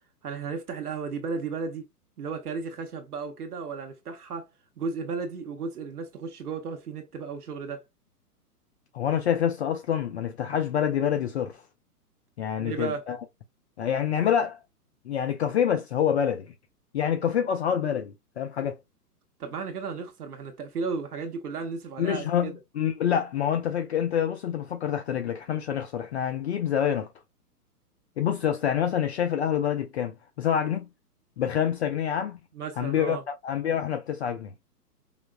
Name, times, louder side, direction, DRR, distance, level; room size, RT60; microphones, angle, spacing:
voice 1, 0.2-1.8 2.2-4.5 4.8-7.8 12.6-13.0 19.4-22.5 32.5-33.2, right 5 dB, 70° right, 1.0 m, -34 dB
voice 2, 8.9-11.6 12.4-13.2 13.8-14.6 15.1-16.5 16.9-18.8 22.0-27.1 28.2-30.9 31.4-32.4 32.8-34.5, left 9 dB, 45° left, 0.5 m, -27 dB
5.0 x 2.1 x 2.3 m
figure-of-eight pair, 120°, 47 cm